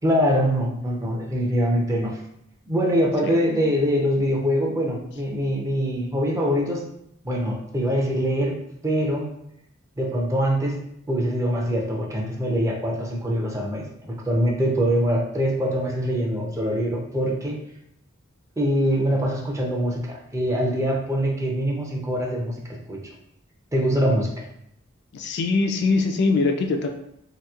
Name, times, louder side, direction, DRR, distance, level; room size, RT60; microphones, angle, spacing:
voice 1, 0.0-2.2 2.7-6.8 7.2-8.6 8.8-9.3 10.0-10.8 11.1-17.6 18.6-23.0 23.7-24.3, equal, 15° right, -1 dB, 0.5 m, -23 dB
voice 2, 25.1-26.9, left 3 dB, 55° left, 4 dB, 0.3 m, -22 dB
2.9 x 2.8 x 2.3 m, 0.75 s
head